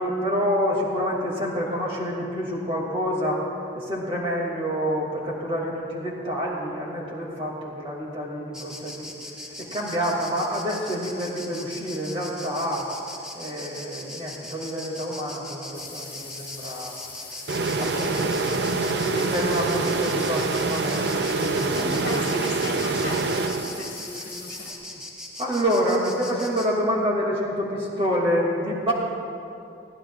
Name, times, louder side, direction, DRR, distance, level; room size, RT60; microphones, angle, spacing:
voice 1, 0.0-3.5 3.7-9.1 9.6-12.9 13.3-17.0 17.8-18.4 18.6-22.2 22.5-22.6 24.1-24.3 25.4-28.9, equal, 30° right, -3 dB, 2.5 m, -28 dB
Insect, 8.5-26.7, left 1 dB, 5° right, 1.4 m, -39 dB
sound 1, 15.7-24.7, left 4 dB, 15° left, 2.4 m, -43 dB
sound 2, 17.5-24.1, right 3 dB, 60° right, 0.5 m, -26 dB
voice 2, 21.6-25.0, left 1 dB, 55° left, -3 dB, 1.7 m, -36 dB
22.5 x 15.5 x 2.5 m, 2.7 s
head